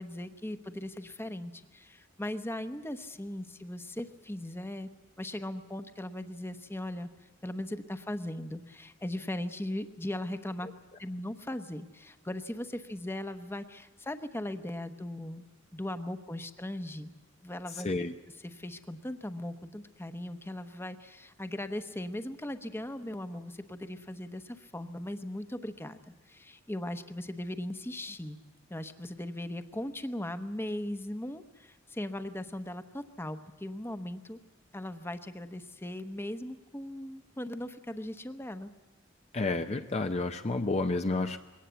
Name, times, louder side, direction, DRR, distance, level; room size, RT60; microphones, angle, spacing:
voice 1, 0.0-4.9 5.2-7.1 7.4-10.7 11.0-15.4 15.7-17.1 17.4-18.0 18.4-26.0 26.3-28.4 28.7-34.4 34.7-38.7, left 1 dB, 10° left, 9 dB, 0.9 m, -38 dB
voice 2, 17.7-18.1 39.3-41.4, left 3 dB, 35° left, 7 dB, 0.7 m, -30 dB
22.0 x 18.0 x 8.1 m, 1.1 s
head